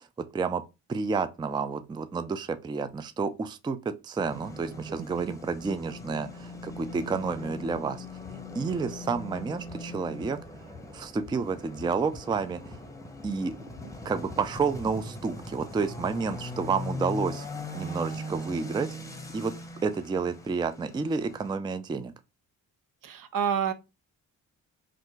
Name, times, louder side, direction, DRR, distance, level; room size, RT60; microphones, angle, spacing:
voice 1, 0.9-3.8 4.0-8.1 8.6-10.4 10.9-12.7 13.2-13.6 14.1-17.5 17.7-18.9 19.3-19.5 19.8-22.1, right 5 dB, 15° right, 0.3 m, -30 dB
sound 1, 4.2-21.6, left 1 dB, 10° left, 0.8 m, -40 dB
voice 2, 4.9-5.4 23.0-23.7, right 7 dB, 60° right, 0.6 m, -30 dB
sound 2, 7.4-9.4 9.7-13.5 13.7-15.1, left 6 dB, 80° right, 1.7 m, -48 dB
3.2 x 2.5 x 3.1 m
supercardioid pair, 50°, 36 cm